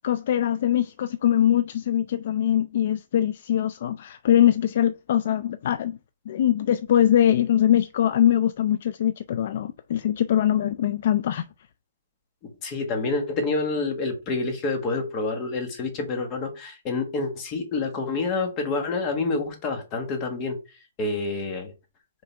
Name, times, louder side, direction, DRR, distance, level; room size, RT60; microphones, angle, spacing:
voice 1, 0.0-6.0 6.3-11.4, left 11 dB, 45° left, 0.3 m, -22 dB
voice 2, 12.6-20.6 21.0-21.7, left 3 dB, 20° left, 1.4 m, -28 dB
5.8 x 3.8 x 4.3 m
hypercardioid pair, 170°, 0 cm